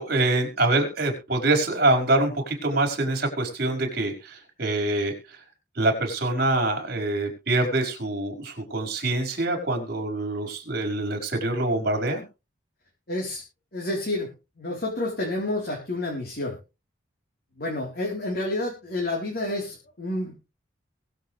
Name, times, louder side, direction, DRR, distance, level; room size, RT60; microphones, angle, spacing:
voice 1, 0.0-5.1 5.8-12.2, right 2 dB, 50° right, 3 dB, 5.3 m, -25 dB
voice 2, 13.1-13.4 13.7-14.3 14.6-16.6 17.5-20.3, left 2 dB, 50° left, -2 dB, 4.1 m, -29 dB
22.5 x 7.7 x 3.4 m, 0.30 s
head